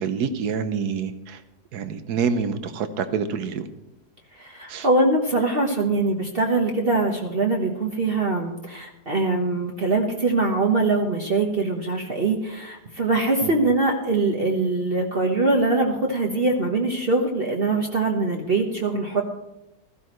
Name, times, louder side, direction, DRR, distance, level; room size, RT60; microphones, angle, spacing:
voice 1, 0.0-1.4 1.7-3.7 4.7-4.9 13.4-13.5, right 6 dB, 75° right, 10 dB, 1.5 m, -27 dB
voice 2, 4.4-19.2, right 3 dB, 40° right, 1 dB, 1.3 m, -23 dB
15.5 x 14.0 x 3.1 m, 0.95 s
omnidirectional pair, 1.7 m